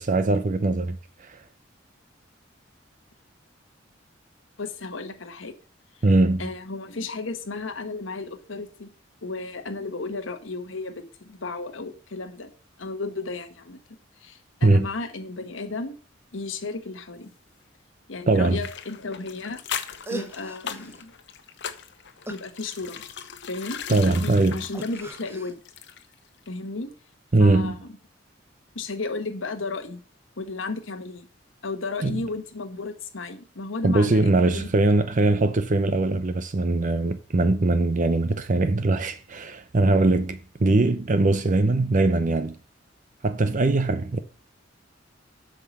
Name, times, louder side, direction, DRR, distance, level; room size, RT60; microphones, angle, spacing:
voice 1, 0.0-1.4 6.0-6.5 14.6-14.9 18.3-18.6 23.9-24.6 27.3-27.8 32.0-32.2 33.8-42.6 43.2-44.2, right 2 dB, 40° right, 0.6 m, -21 dB
voice 2, 4.6-5.6 6.4-8.9 9.2-12.5 12.8-13.8 14.2-15.9 16.3-17.3 18.1-19.6 20.1-21.1 22.3-23.0 23.5-25.6 26.5-26.9 27.4-27.9 28.7-30.0 30.4-31.3 31.6-34.7, left 3 dB, 90° left, 1.2 m, -34 dB
sound 1, 18.6-26.2 26.5-26.6, left 8 dB, 65° left, 1.0 m, -38 dB
sound 2, 19.8-19.9 20.0-21.0 22.3-23.3 24.7-25.5, right 2 dB, 15° right, 1.0 m, -39 dB
8.3 x 5.8 x 7.1 m
head